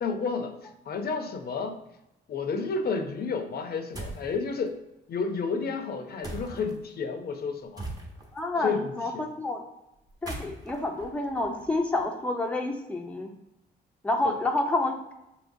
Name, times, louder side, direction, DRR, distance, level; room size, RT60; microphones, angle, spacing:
voice 1, 0.0-1.8 2.3-4.8 5.1-7.8 8.6-9.3 14.2-14.4, left 4 dB, 55° left, 6 dB, 0.6 m, -31 dB
sound 1, 3.9-4.3 6.2-6.8 7.8-8.4 10.1-12.0, right 2 dB, 20° right, 0.9 m, -40 dB
voice 2, 8.3-9.6 10.2-13.3 14.0-15.1, left 2 dB, 5° left, 2 dB, 0.5 m, -29 dB
4.7 x 2.9 x 2.6 m, 0.90 s
cardioid pair, 90°, 20 cm